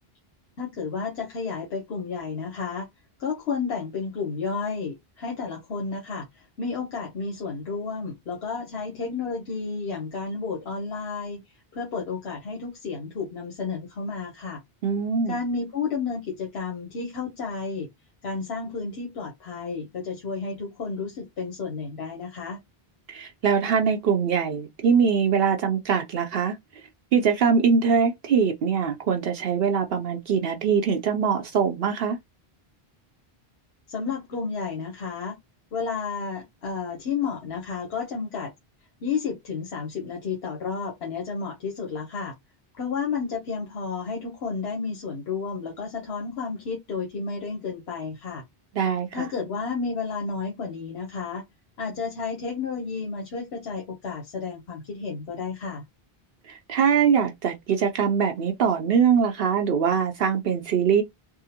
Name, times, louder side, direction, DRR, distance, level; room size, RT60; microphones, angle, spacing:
voice 1, 0.6-2.9 3.2-11.4 11.7-14.6 15.3-17.9 18.2-22.6 33.9-35.4 35.7-38.5 39.0-42.3 42.7-48.4 49.1-51.4 51.8-55.8, left 5 dB, 85° left, 1.1 m, -31 dB
voice 2, 14.8-15.4 23.1-26.6 27.1-32.2 48.7-49.3 56.5-61.0, right 6 dB, 70° right, 0.8 m, -22 dB
3.6 x 2.1 x 2.8 m
omnidirectional pair, 1.0 m